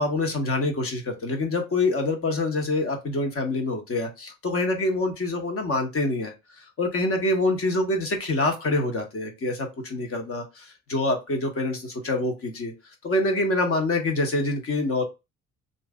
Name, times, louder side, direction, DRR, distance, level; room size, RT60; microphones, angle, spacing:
voice 1, 0.0-12.7 13.0-15.0, left 2 dB, 50° left, 3 dB, 1.2 m, -26 dB
3.1 x 2.7 x 3.6 m, 0.25 s
cardioid pair, 90°, 30 cm